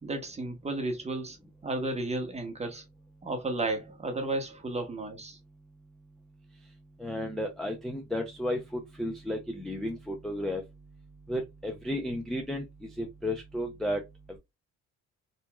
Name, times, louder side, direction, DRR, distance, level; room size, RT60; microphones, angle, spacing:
voice 1, 0.0-1.4 1.6-2.8 3.2-5.4, right 2 dB, 20° right, 0.9 m, -33 dB
voice 2, 7.0-10.6 11.3-14.0, left 1 dB, ahead, 0.4 m, -33 dB
2.9 x 2.3 x 2.2 m
cardioid pair, 90°, 30 cm